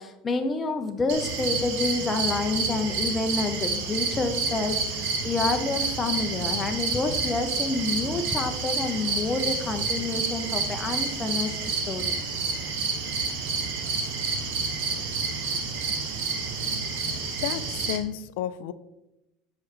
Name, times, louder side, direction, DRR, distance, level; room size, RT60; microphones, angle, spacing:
voice 1, 0.0-12.2, left 3 dB, 20° left, 5 dB, 0.5 m, -28 dB
sound 1, 1.1-18.0, right 4 dB, 85° right, 1.1 m, -29 dB
voice 2, 17.4-18.7, left 11 dB, 80° left, 13 dB, 0.3 m, -31 dB
6.1 x 4.8 x 3.3 m, 0.93 s
supercardioid pair, 125°, 0 cm